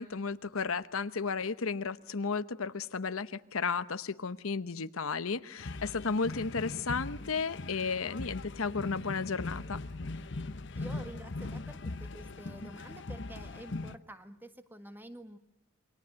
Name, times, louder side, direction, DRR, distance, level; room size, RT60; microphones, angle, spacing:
voice 1, 0.0-9.8, left 5 dB, 90° left, 0.9 m, -33 dB
sound 1, 5.6-14.0, left 2 dB, 55° left, 0.9 m, -40 dB
voice 2, 10.7-15.4, right 1 dB, 10° right, 1.6 m, -49 dB
28.0 x 23.0 x 6.4 m
head